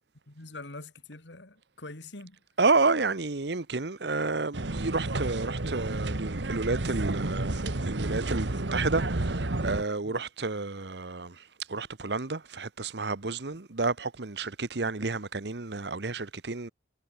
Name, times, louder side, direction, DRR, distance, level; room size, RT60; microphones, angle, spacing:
voice 1, 0.3-2.4 10.0-10.2, left 2 dB, 80° left, 2.7 m, -44 dB
voice 2, 2.6-11.3 11.7-16.7, right 3 dB, 70° right, 1.1 m, -30 dB
sound 1, 4.5-9.8, right 2 dB, 85° right, 1.5 m, -31 dB
head